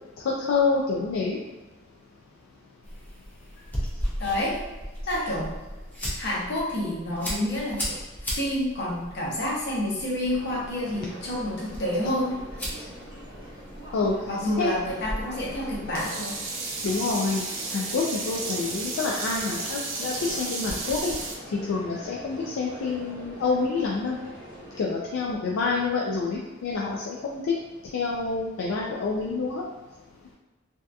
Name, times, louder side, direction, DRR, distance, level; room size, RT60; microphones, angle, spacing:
voice 1, 0.2-1.4 13.9-14.1 14.6-14.7 16.8-17.4 17.7-21.1 21.5-24.2 24.8-27.5 27.9-29.6, left 4 dB, 75° left, -3 dB, 0.3 m, -27 dB
sound 1, 2.8-16.0, equal, 10° left, 0.5 m, -37 dB
voice 2, 4.2-4.6 5.1-5.5 6.2-8.0 8.3-12.4 14.3-16.4, left 1 dB, 55° left, -4 dB, 0.7 m, -28 dB
sound 2, 10.3-24.8, equal, 35° right, 1.1 m, -44 dB
Sink (filling or washing), 16.0-21.4, right 3 dB, 80° right, 0.5 m, -33 dB
2.7 x 2.2 x 2.3 m, 1.2 s
head